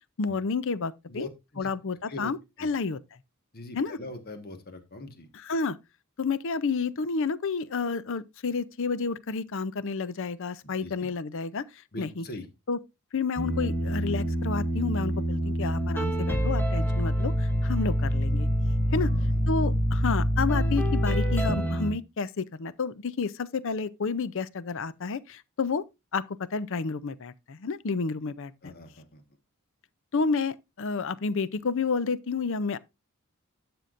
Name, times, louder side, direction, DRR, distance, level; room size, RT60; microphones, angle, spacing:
voice 1, 0.2-1.3 1.6-3.0 3.7-4.0 5.3-5.8 6.2-12.2 12.7-12.8 13.1-18.5 18.9-19.1 19.5-25.8 26.1-28.7 30.1-32.8, left 4 dB, 60° left, 0.6 m, -30 dB
voice 2, 1.1-1.7 2.1-2.3 2.6-2.7 3.5-5.3 10.6-11.1 11.9-12.5 17.7-17.8 18.9-19.4 28.6-29.2, left 1 dB, 45° left, 1.5 m, -41 dB
sound 1, 13.4-21.9, equal, 10° left, 1.5 m, -26 dB
11.5 x 6.8 x 2.5 m
head